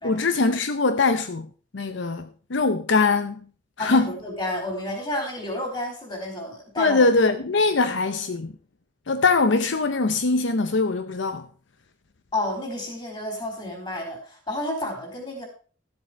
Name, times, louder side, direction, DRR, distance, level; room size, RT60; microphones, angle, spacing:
voice 1, 0.0-3.4 3.8-4.1 6.8-8.5 9.1-11.5, left 3 dB, 70° left, 0.7 m, -22 dB
voice 2, 3.8-7.1 7.8-7.9 12.3-15.5, left 1 dB, 25° left, 4.7 m, -31 dB
13.5 x 7.8 x 5.1 m
head